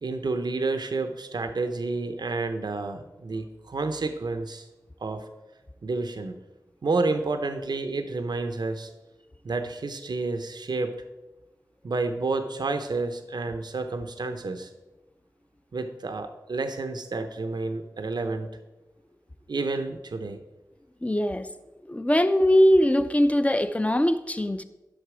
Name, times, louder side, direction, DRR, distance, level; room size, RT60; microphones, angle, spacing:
voice 1, 0.0-4.7 5.0-5.3 5.8-6.3 6.8-8.9 9.4-11.0 11.8-14.7 15.7-18.5 19.5-20.4, right 3 dB, 80° right, 0.8 m, -30 dB
voice 2, 21.0-21.5 21.9-24.6, equal, 20° left, 0.6 m, -21 dB
11.5 x 6.7 x 4.9 m
wide cardioid pair, 70°, 7 cm